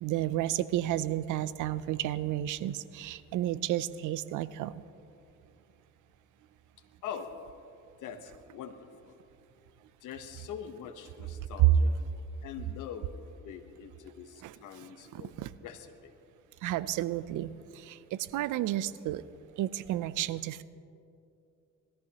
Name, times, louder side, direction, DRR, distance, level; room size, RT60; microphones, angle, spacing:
voice 1, 0.0-4.8 14.4-14.6 15.1-15.5 16.6-19.2 19.6-20.6, right 13 dB, 80° right, 16 dB, 0.5 m, -32 dB
voice 2, 8.0-9.2 10.0-12.0 12.4-13.1 13.4-16.1, left 8 dB, 85° left, 8 dB, 1.0 m, -43 dB
20.5 x 14.0 x 2.9 m, 2.6 s
cardioid pair, 90°, 30 cm